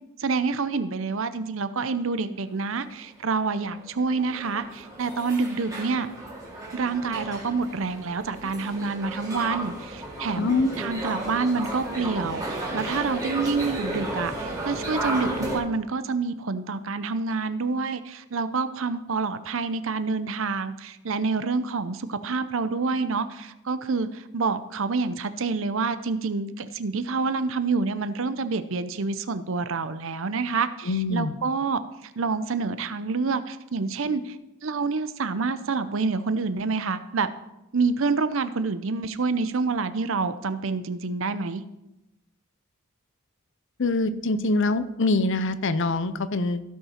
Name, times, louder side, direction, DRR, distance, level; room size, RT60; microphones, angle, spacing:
voice 1, 0.2-6.1 6.7-34.4 34.6-37.3 37.7-41.6, right 4 dB, 60° right, 12 dB, 0.6 m, -27 dB
sound 1, 3.6-15.6, right 1 dB, 15° right, 2.3 m, -34 dB
voice 2, 10.4-10.8 30.9-31.3 43.8-46.6, left 2 dB, 55° left, 13 dB, 0.6 m, -24 dB
16.5 x 5.7 x 4.4 m, 0.92 s
head